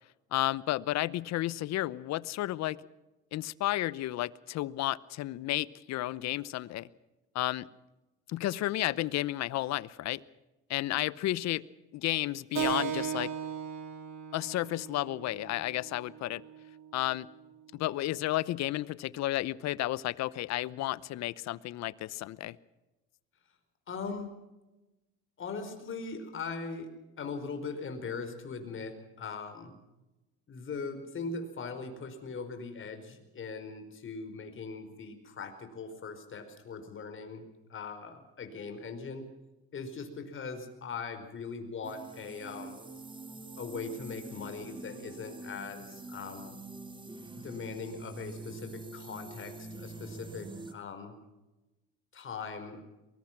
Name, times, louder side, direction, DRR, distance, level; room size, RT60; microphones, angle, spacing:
voice 1, 0.3-2.8 3.3-6.9 7.3-7.7 8.3-10.2 10.7-11.6 11.9-13.3 14.3-16.4 16.9-17.3 17.7-22.6, left 15 dB, 60° left, 20 dB, 0.9 m, -32 dB
Keyboard (musical), 12.5-17.6, right 8 dB, 65° right, 4.3 m, -38 dB
voice 2, 23.9-24.3 25.4-26.9 27.2-29.7 30.5-39.3 39.7-42.8 43.6-46.6 47.3-51.2 52.1-52.8, left 4 dB, 40° left, 7 dB, 4.7 m, -40 dB
sound 1, 41.8-50.7, right 2 dB, 15° right, 2.3 m, -45 dB
23.5 x 21.0 x 6.0 m, 1.0 s
supercardioid pair, 90°, 30 cm